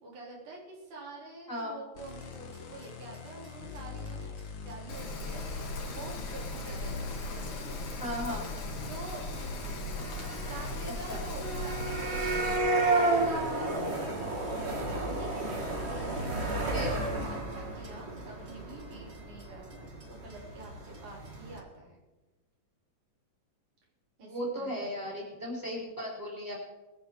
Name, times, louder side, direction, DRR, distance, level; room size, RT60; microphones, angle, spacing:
voice 1, 0.0-8.1 8.9-9.3 9.9-14.2 14.7-16.9 17.3-22.0 24.2-24.9, right 3 dB, 80° right, -4 dB, 4.8 m, -47 dB
sound 1, 2.0-16.9, left 4 dB, 55° left, 1.7 m, -44 dB
sound 2, 2.5-2.6 2.8-2.9 3.1-3.2 3.4-3.5 3.8-3.9 4.1-4.2 4.4-4.7 5.0-5.1 5.3-5.4 5.6-5.9 6.3-6.4 6.6-7.2 7.5-7.8 8.1-8.2 8.5-8.6 8.8-8.9 9.1-9.2 9.4-9.5 9.7-21.6, right 2 dB, 25° right, 1.6 m, -33 dB
Rain, 4.9-12.6, left 1 dB, 75° left, 3.5 m, -38 dB
voice 2, 8.0-8.5 11.1-11.2 16.7-16.9 24.2-26.5, equal, 5° left, -4 dB, 4.0 m, -36 dB
20.0 x 13.5 x 3.8 m, 1.1 s
omnidirectional pair, 3.3 m